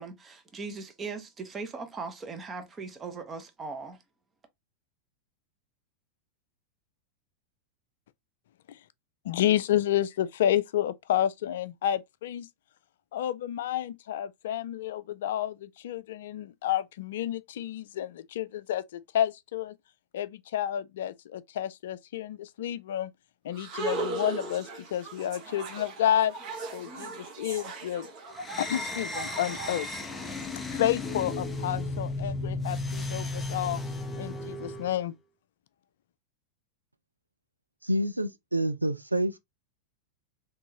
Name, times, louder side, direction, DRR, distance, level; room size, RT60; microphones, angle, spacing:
voice 1, 0.0-4.0, right 4 dB, 20° right, 0.9 m, -39 dB
voice 2, 9.2-12.5 13.1-19.7 20.1-23.1 23.4-26.3 26.7-28.1 28.6-29.9 30.7-33.8 34.2-35.1, left 11 dB, 55° left, 0.3 m, -30 dB
sound 1, 23.5-30.5, right 3 dB, 40° right, 1.1 m, -38 dB
sound 2, 28.4-35.0, left 2 dB, 10° left, 0.6 m, -34 dB
voice 3, 37.8-39.4, right 1 dB, 85° right, 0.4 m, -28 dB
3.5 x 3.0 x 2.8 m
figure-of-eight pair, 90°, 0 cm